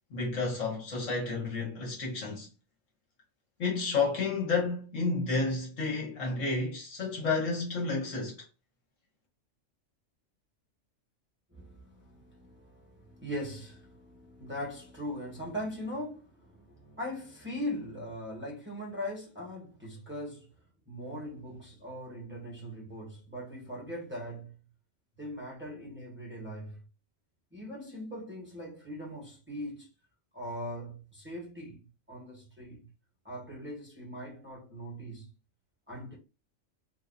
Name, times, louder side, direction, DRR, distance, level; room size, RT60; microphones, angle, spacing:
voice 1, 0.1-2.5 3.6-8.4, left 3 dB, 70° left, 1.6 m, -31 dB
voice 2, 11.5-20.5 20.9-24.5 25.2-26.8 27.5-29.9 30.3-31.8 32.1-32.9 33.2-35.3 35.9-36.2, equal, 10° right, 1.5 m, -40 dB
3.9 x 2.7 x 2.6 m
omnidirectional pair, 1.4 m